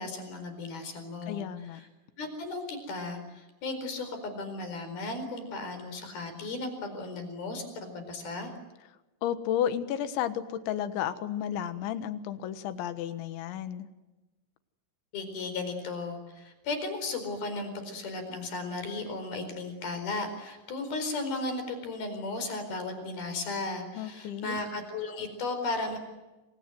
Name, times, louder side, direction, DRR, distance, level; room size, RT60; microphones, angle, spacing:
voice 1, 0.0-1.9 2.2-8.5 15.1-26.0, left 3 dB, 50° left, 8 dB, 6.1 m, -35 dB
voice 2, 1.3-1.8 9.2-13.9 24.0-24.6, left 10 dB, 70° left, 11 dB, 3.5 m, -32 dB
28.0 x 26.0 x 7.8 m, 1.1 s
omnidirectional pair, 5.8 m